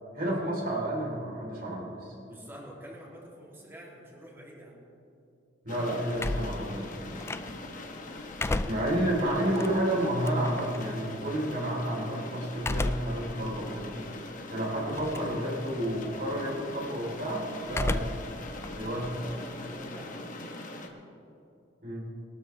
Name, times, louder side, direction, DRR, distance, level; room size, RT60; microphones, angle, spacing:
voice 1, 0.1-2.1 5.6-6.9 8.7-14.0 14.5-18.2 18.7-19.2 21.8-22.1, right 1 dB, 50° right, -3 dB, 3.9 m, -30 dB
voice 2, 2.2-4.9 19.1-20.3, equal, 15° right, -4 dB, 2.9 m, -47 dB
sound 1, 5.7-20.9, left 2 dB, 45° left, 1.4 m, -42 dB
sound 2, 6.2-7.8 8.2-10.8 12.6-13.3 13.8-13.9 14.9-15.4 15.7-16.1 17.7-18.3 18.6-20.0, left 2 dB, 15° left, 0.3 m, -33 dB
22.5 x 12.5 x 3.4 m, 2.8 s
head